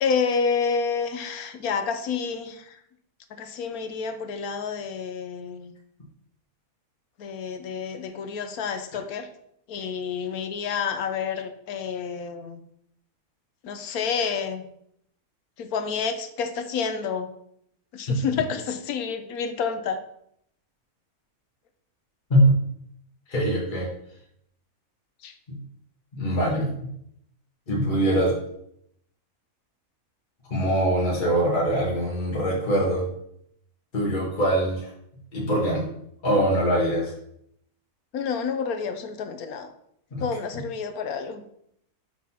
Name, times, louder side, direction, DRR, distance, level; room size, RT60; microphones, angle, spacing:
voice 1, 0.0-2.8 3.3-5.7 7.2-9.3 9.7-12.6 13.6-14.7 15.6-17.3 17.9-20.0 25.2-25.4 38.1-39.7 40.2-41.4, left 6 dB, 80° left, 8 dB, 1.2 m, -29 dB
voice 2, 23.3-23.9 25.5-25.6 26.1-26.9 27.7-28.4 30.5-33.1 33.9-34.9 35.3-35.8 36.2-37.1 40.1-40.2, right 1 dB, 35° left, -4 dB, 1.7 m, -23 dB
6.2 x 3.9 x 5.8 m, 0.73 s
omnidirectional pair, 1.6 m